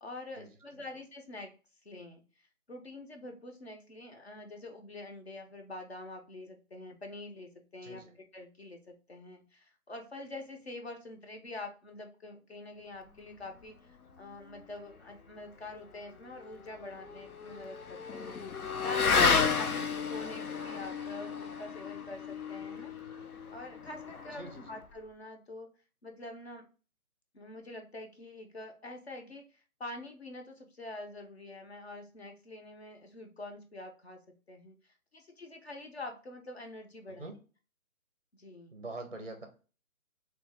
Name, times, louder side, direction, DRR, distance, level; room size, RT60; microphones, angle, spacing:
voice 1, 0.0-1.5 1.8-2.2 2.7-8.0 8.3-13.7 14.2-22.9 23.5-25.7 26.0-26.7 27.3-34.2 34.5-34.7 35.1-37.3 38.3-38.7, left 2 dB, 45° left, 4 dB, 0.7 m, -45 dB
voice 2, 7.8-8.1 19.6-19.8 24.3-24.7 37.2-37.4 38.7-39.5, right 2 dB, 40° right, 6 dB, 0.5 m, -44 dB
Motorcycle / Accelerating revving vroom, 16.2-24.9, left 5 dB, 85° left, 0.8 m, -32 dB
3.2 x 2.9 x 3.4 m, 0.35 s
hypercardioid pair, 175°, 43 cm